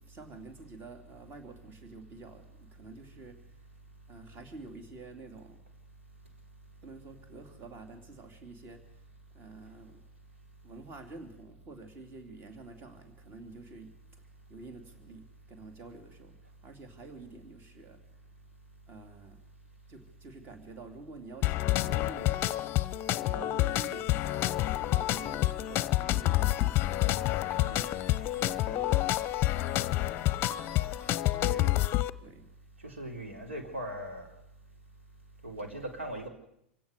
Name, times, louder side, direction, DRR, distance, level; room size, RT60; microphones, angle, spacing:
voice 1, 0.0-3.7 4.1-5.6 6.8-9.0 9.3-10.0 10.6-14.2 14.5-18.0 18.9-19.4 19.9-22.5 23.2-27.2 27.6-29.3 32.2-32.5, right 3 dB, 30° right, 7 dB, 3.2 m, -49 dB
sound 1, 21.4-32.1, left 16 dB, 35° left, 0.7 m, -28 dB
sound 2, 25.1-31.2, left 2 dB, 5° right, 3.5 m, -51 dB
voice 2, 31.4-31.8 32.8-34.3 35.4-36.3, right 1 dB, 80° right, 3 dB, 3.8 m, -39 dB
27.0 x 16.5 x 6.7 m, 0.76 s
figure-of-eight pair, 85°, 7 cm